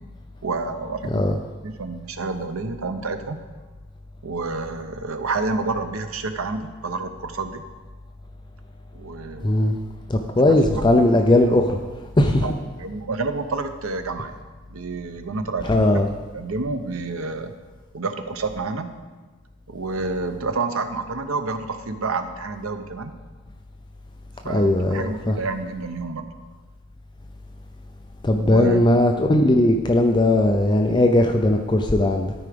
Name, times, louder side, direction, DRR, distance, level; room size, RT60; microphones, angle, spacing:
voice 1, 0.4-1.2 1.6-3.4 4.2-7.6 8.9-9.8 10.5-10.9 12.4-12.5 12.8-14.4 14.7-15.8 16.3-17.5 17.9-18.9 19.7-23.1 24.4-26.3 28.4-28.9, right 3 dB, 85° right, 8 dB, 0.8 m, -29 dB
voice 2, 9.4-9.8 10.1-11.8 12.2-12.5 15.7-16.1 24.5-25.4 28.2-32.3, left 1 dB, 20° left, 4 dB, 0.4 m, -18 dB
13.0 x 4.8 x 5.1 m, 1.3 s
head